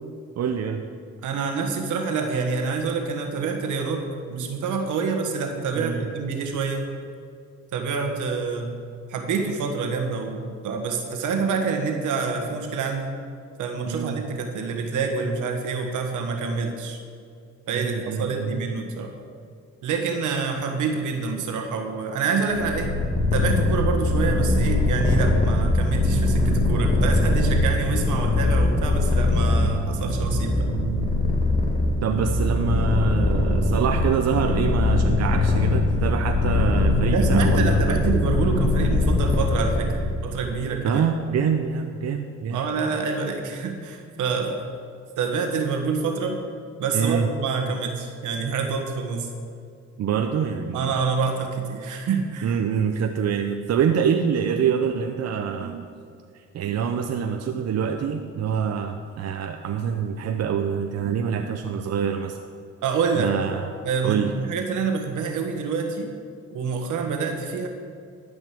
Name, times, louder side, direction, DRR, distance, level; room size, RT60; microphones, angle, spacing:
voice 1, 0.4-0.8 5.7-6.1 13.8-14.2 17.7-18.6 30.7-31.1 32.0-38.0 40.8-42.6 46.9-47.3 50.0-50.9 52.4-55.9 56.3-62.4 63.1-63.7 64.0-64.3, right 7 dB, 60° right, 5 dB, 0.7 m, -26 dB
voice 2, 1.2-4.0 4.3-6.9 7.7-8.8 9.1-13.2 13.6-17.0 17.7-19.1 19.8-22.9 23.3-30.7 37.1-41.0 42.5-44.6 45.2-46.4 46.8-49.3 50.7-52.6 62.8-63.3 63.8-66.1 66.5-67.7, right 5 dB, 80° right, 4 dB, 1.6 m, -27 dB
Purr, 22.6-40.2, left 2 dB, 20° left, 2.5 m, -22 dB
12.5 x 5.3 x 7.7 m, 2.3 s
cardioid pair, 90°, 30 cm